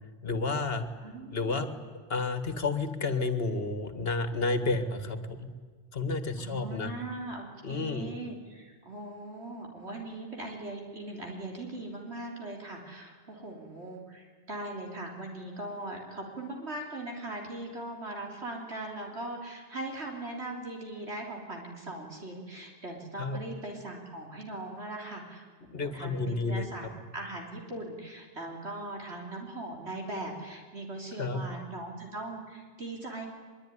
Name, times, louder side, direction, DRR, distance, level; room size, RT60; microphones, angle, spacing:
voice 1, 0.2-0.9 1.3-1.7 2.1-5.5 5.9-6.9 7.6-8.3 23.2-23.4 25.7-26.7 31.2-31.4, left 3 dB, 60° left, 10 dB, 2.0 m, -31 dB
voice 2, 1.0-1.6 6.4-25.5 25.7-26.9 27.1-33.3, right 2 dB, 70° right, 0 dB, 3.7 m, -40 dB
23.0 x 22.5 x 10.0 m, 1.5 s
omnidirectional pair, 1.2 m